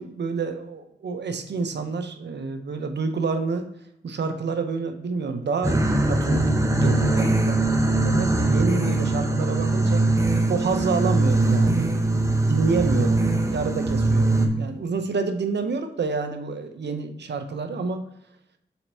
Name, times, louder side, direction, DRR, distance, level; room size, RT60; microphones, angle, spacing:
voice 1, 0.0-3.6 4.0-10.1 10.5-18.0, right 4 dB, 75° right, 7 dB, 0.7 m, -28 dB
sound 1, 5.6-14.5, right 2 dB, 15° right, 1.0 m, -21 dB
5.7 x 4.3 x 4.2 m, 0.81 s
cardioid pair, 45°, 18 cm